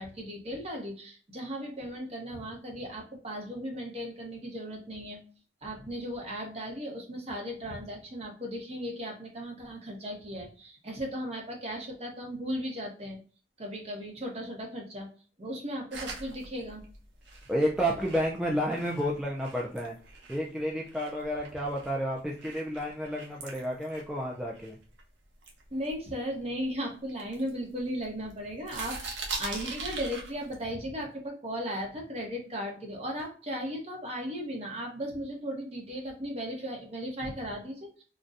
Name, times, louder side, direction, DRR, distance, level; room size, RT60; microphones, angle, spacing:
voice 1, 0.0-5.2 5.6-13.2 13.6-15.1 15.4-16.8 25.7-38.0, equal, 35° right, 1 dB, 0.9 m, -36 dB
sound 1, 15.9-20.5 20.9-25.0 25.4-26.6 27.1-28.3 28.6-30.6, right 3 dB, 80° right, 0.8 m, -42 dB
voice 2, 17.5-20.0 20.3-24.8, equal, 5° right, -3 dB, 0.4 m, -31 dB
3.9 x 2.2 x 2.4 m, 0.41 s
head